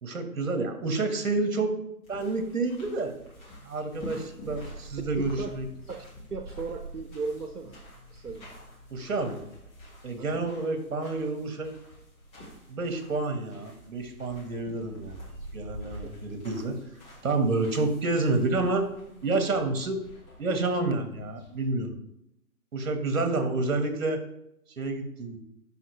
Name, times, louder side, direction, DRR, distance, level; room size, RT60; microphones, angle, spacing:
voice 1, 0.0-1.8 2.1-3.1 3.6-5.7 8.9-9.4 10.0-11.7 12.7-15.2 15.5-16.8 17.2-18.9 19.2-20.0 20.4-21.9 22.7-24.2 24.8-25.4, right 3 dB, 60° right, 6 dB, 1.8 m, -29 dB
sound 1, 2.0-21.6, right 1 dB, 15° left, 2.0 m, -46 dB
voice 2, 5.2-5.5 5.9-7.8 8.1-8.5 10.2-10.4, right 4 dB, 90° right, 6 dB, 0.9 m, -36 dB
11.5 x 5.4 x 3.3 m, 0.79 s
figure-of-eight pair, 145°, 45 cm